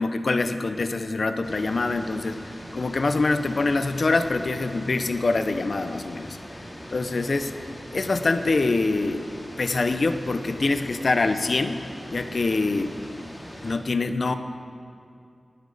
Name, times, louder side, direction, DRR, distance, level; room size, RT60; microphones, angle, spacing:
voice 1, 0.0-6.4 6.9-7.5 7.9-9.2 9.6-11.8 12.1-13.0 13.6-14.3, left 3 dB, 65° left, 9 dB, 0.7 m, -25 dB
sound 1, 1.4-13.8, equal, 25° left, 2.5 m, -41 dB
19.5 x 11.5 x 4.1 m, 2.4 s
wide cardioid pair, 60°, 0 cm